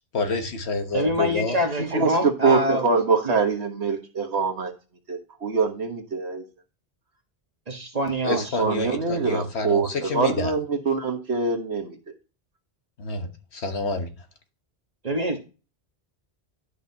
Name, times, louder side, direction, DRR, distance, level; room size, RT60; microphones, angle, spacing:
voice 1, 0.1-1.6 8.2-10.5 13.0-14.1, left 3 dB, 80° left, 6 dB, 1.5 m, -28 dB
voice 2, 0.9-2.8 3.2-3.4 7.7-8.9 15.0-15.4, equal, 35° right, 4 dB, 1.5 m, -26 dB
voice 3, 1.8-4.7 5.1-6.4 8.3-12.0, right 4 dB, 80° right, 5 dB, 1.6 m, -24 dB
11.5 x 5.8 x 2.8 m, 0.33 s
omnidirectional pair, 1.1 m